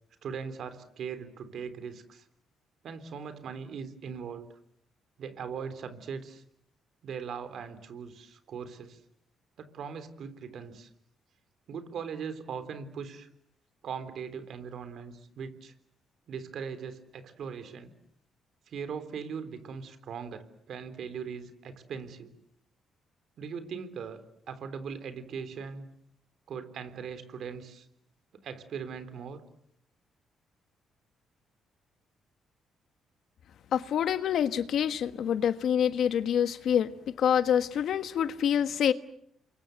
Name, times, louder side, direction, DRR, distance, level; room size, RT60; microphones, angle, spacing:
voice 1, 0.2-2.3 2.8-4.6 5.2-6.4 7.0-9.0 9.6-10.9 11.7-13.3 13.8-15.7 16.3-17.9 18.7-22.3 23.4-24.2 24.5-25.9 26.5-27.9 28.3-29.4, right 6 dB, 65° right, 3.6 m, -40 dB
voice 2, 33.7-36.9 37.2-38.9, left 9 dB, 70° left, 1.4 m, -26 dB
29.0 x 24.0 x 8.0 m
cardioid pair, 90°, 0 cm